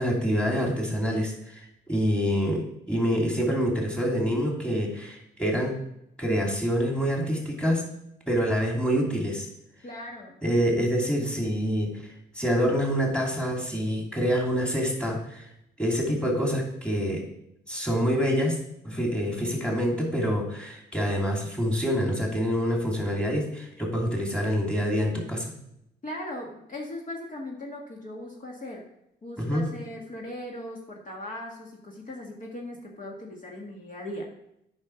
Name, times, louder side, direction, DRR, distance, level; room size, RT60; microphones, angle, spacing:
voice 1, 0.0-1.6 1.9-5.8 6.2-7.8 8.3-9.5 10.4-12.0 12.3-15.5 15.8-17.2 17.7-18.6 18.8-25.5 29.4-29.7, equal, 5° left, -1 dB, 2.8 m, -26 dB
voice 2, 9.8-10.4 26.0-28.8 29.2-34.3, left 1 dB, 40° left, -2 dB, 1.9 m, -38 dB
8.6 x 5.6 x 5.8 m, 0.79 s
cardioid pair, 90°, 20 cm